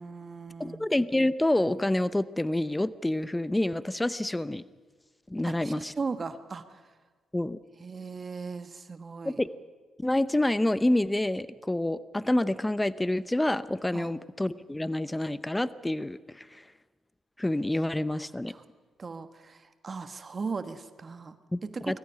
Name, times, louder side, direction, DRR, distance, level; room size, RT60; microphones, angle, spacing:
voice 1, 0.0-0.9 5.4-6.8 7.8-9.4 13.9-14.1 18.5-18.6 19.0-22.0, right 4 dB, 40° right, 11 dB, 1.3 m, -38 dB
voice 2, 0.6-4.6 5.3-5.9 7.3-7.6 9.2-9.5 10.0-16.6 17.4-18.5 21.5-22.0, left 1 dB, 15° left, 17 dB, 0.8 m, -28 dB
22.5 x 14.5 x 9.8 m, 1.4 s
supercardioid pair, 60°, 0 cm